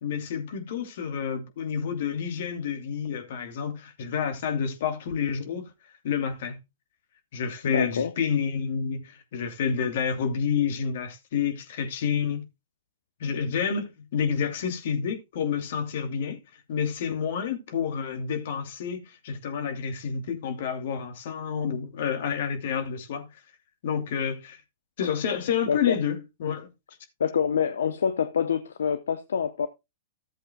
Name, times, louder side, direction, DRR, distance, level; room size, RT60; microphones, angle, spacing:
voice 1, 0.0-5.7 6.0-6.6 7.3-12.4 13.2-16.4 16.7-23.3 23.8-24.6 25.0-26.7, left 7 dB, 65° left, 2.7 m, -29 dB
voice 2, 7.7-8.1 25.7-26.0 27.2-29.7, left 7 dB, 85° left, 0.8 m, -26 dB
15.0 x 7.8 x 2.3 m
hypercardioid pair, 125°, 0 cm